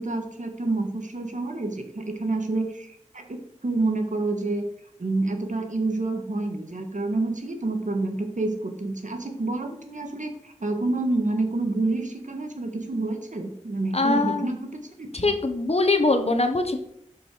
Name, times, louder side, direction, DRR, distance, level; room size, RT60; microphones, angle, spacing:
voice 1, 0.0-3.4 3.6-4.7 5.0-15.1, right 2 dB, 75° right, 5 dB, 1.6 m, -28 dB
voice 2, 13.9-14.5 15.1-16.8, left 2 dB, 55° left, 6 dB, 1.3 m, -22 dB
11.5 x 5.4 x 4.7 m, 0.69 s
wide cardioid pair, 55°, 13 cm